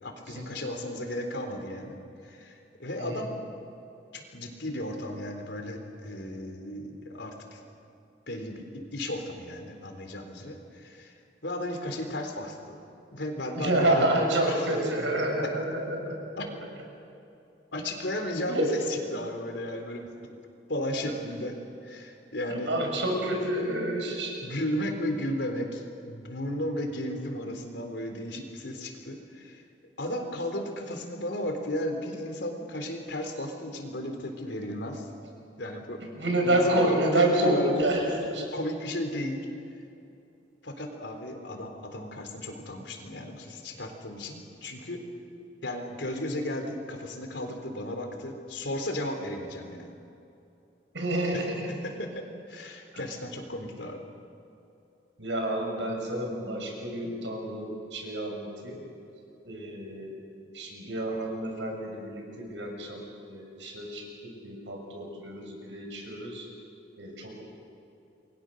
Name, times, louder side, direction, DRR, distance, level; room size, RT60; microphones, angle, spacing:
voice 1, 0.0-3.3 4.1-7.6 8.3-11.1 11.4-12.8 13.1-14.1 14.5-14.7 16.4-16.5 17.7-20.3 20.7-22.9 24.4-29.6 30.0-35.1 35.5-36.0 36.4-37.9 38.4-39.5 40.6-45.0 45.6-49.9 51.3-51.4 51.8-54.0, left 1 dB, 75° left, 4 dB, 3.8 m, -34 dB
voice 2, 13.6-16.5 18.5-18.7 21.0-21.1 22.5-24.3 36.2-38.5 50.9-51.8 52.9-53.0 55.2-58.8 59.5-60.1 60.5-66.5 67.0-67.4, right 1 dB, 80° right, 1 dB, 6.7 m, -29 dB
29.0 x 22.5 x 6.6 m, 2.7 s
head